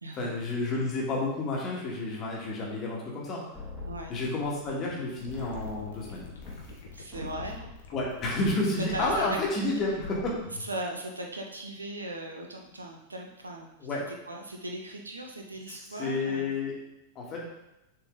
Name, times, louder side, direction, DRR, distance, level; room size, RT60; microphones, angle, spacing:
voice 1, 0.1-3.4 4.1-6.3 7.9-10.4 13.8-14.0 15.7-16.7 17.2-17.4, left 2 dB, 30° left, -3 dB, 1.9 m, -30 dB
sound 1, 3.5-5.1 5.3-8.6 8.9-9.5 9.8-10.4, left 3 dB, ahead, 2.1 m, -43 dB
voice 2, 3.9-4.2 6.9-7.6 8.9-9.4 10.6-13.7 14.1-16.5, right 1 dB, 80° right, 1 dB, 0.9 m, -38 dB
sound 2, 5.2-10.8, left 4 dB, 65° left, 1.3 m, -47 dB
6.9 x 4.3 x 3.8 m, 0.90 s
figure-of-eight pair, 90°, 0 cm